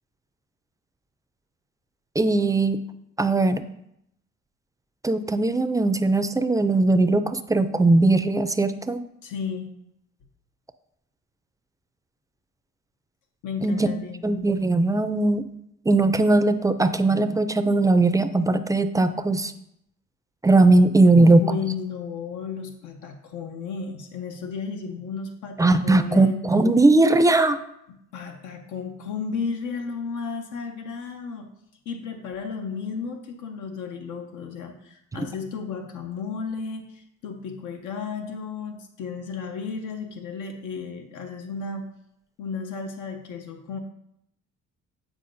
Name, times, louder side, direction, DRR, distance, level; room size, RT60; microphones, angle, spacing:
voice 1, 2.2-2.8 3.2-3.6 5.0-9.0 13.6-13.9 14.2-15.4 15.9-19.5 20.4-21.5 25.6-27.6, right 2 dB, 10° right, 11 dB, 0.3 m, -19 dB
voice 2, 9.2-9.7 13.4-14.2 21.2-26.4 28.1-31.5 31.9-41.9 42.4-43.8, left 5 dB, 85° left, 4 dB, 0.8 m, -33 dB
8.4 x 4.5 x 2.6 m, 0.77 s
cardioid pair, 90°, 30 cm